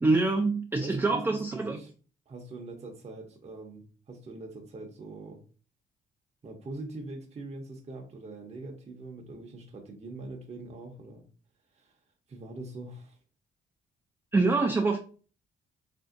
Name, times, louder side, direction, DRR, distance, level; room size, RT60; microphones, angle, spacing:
voice 1, 0.0-1.8 14.3-15.0, right 3 dB, 10° right, 0.3 m, -25 dB
voice 2, 0.8-1.9 2.3-5.4 6.4-11.2 11.7-12.0 12.3-13.2, right 2 dB, 35° right, 0.7 m, -42 dB
3.5 x 2.6 x 2.5 m
cardioid pair, 90°, 20 cm